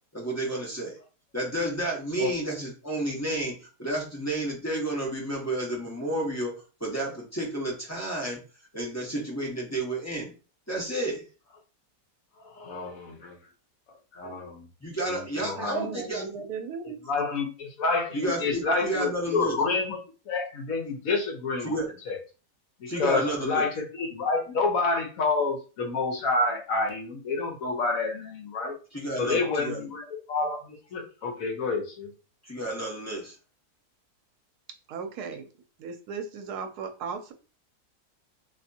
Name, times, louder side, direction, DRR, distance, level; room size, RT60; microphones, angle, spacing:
voice 1, 0.1-1.0 1.3-6.5 6.8-8.4 8.7-10.3 10.7-11.2 14.8-16.3 18.1-19.6 21.6-21.9 22.9-23.7 28.9-29.9 32.4-33.3, right 1 dB, 15° left, -4 dB, 0.7 m, -31 dB
voice 2, 12.4-13.4 14.1-14.7 15.0-15.9 17.0-20.0 20.3-21.8 22.1-22.2 22.8-28.8 29.2-32.1, left 3 dB, 65° left, 3 dB, 1.1 m, -29 dB
voice 3, 15.6-17.0 34.9-35.4 35.8-37.3, right 5 dB, 75° right, 7 dB, 1.1 m, -36 dB
3.3 x 2.8 x 2.7 m, 0.34 s
omnidirectional pair, 1.7 m